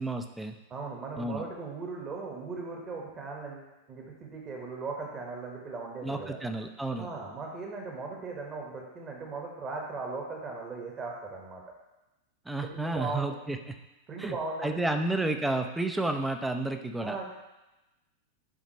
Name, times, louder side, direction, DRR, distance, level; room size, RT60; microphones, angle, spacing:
voice 1, 0.0-0.6 1.2-1.5 6.0-7.1 12.5-13.7 14.2-14.4 14.6-17.2, right 2 dB, 5° right, 6 dB, 0.6 m, -31 dB
voice 2, 0.7-6.4 6.9-11.6 12.6-13.4 14.1-14.8 17.0-17.2, right 3 dB, 25° right, -1 dB, 1.4 m, -38 dB
11.5 x 4.1 x 3.1 m, 1.0 s
figure-of-eight pair, 90°, 0 cm